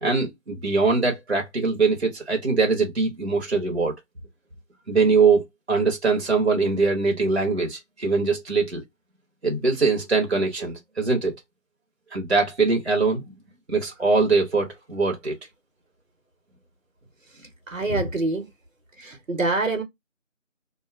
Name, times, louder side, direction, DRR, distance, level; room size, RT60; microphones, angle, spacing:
voice 1, 0.0-3.9 4.9-8.8 9.4-11.3 12.1-13.2 13.7-15.3, right 4 dB, 55° right, 1.0 m, -22 dB
voice 2, 17.7-18.5 19.0-19.8, right 2 dB, 80° right, 1.1 m, -25 dB
2.6 x 2.3 x 2.5 m
figure-of-eight pair, 180°, 39 cm